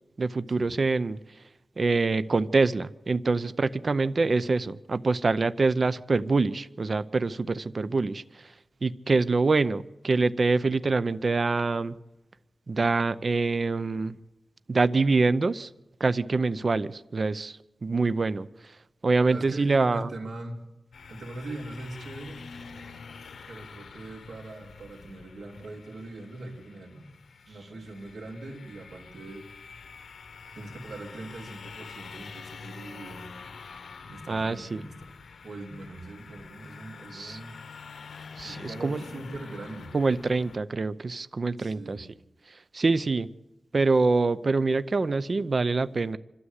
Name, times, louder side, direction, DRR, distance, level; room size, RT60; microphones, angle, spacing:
voice 1, 0.2-1.2 1.8-8.2 8.8-11.9 12.7-14.2 14.7-15.7 16.0-18.5 19.0-20.1 34.3-34.8 37.1-37.4 38.4-39.0 39.9-42.1 42.7-43.3 43.7-46.2, right 3 dB, 45° right, 14 dB, 0.6 m, -25 dB
voice 2, 19.3-20.6 21.1-22.4 23.5-27.1 27.4-29.5 30.5-33.3 34.0-35.1 35.4-37.6 38.4-39.9 41.6-42.0, right 2 dB, 85° right, 1 dB, 3.2 m, -41 dB
sound 1, 20.9-40.6, left 5 dB, 90° left, 0.9 m, -46 dB
25.5 x 13.0 x 8.2 m, 0.98 s
wide cardioid pair, 130°, 0 cm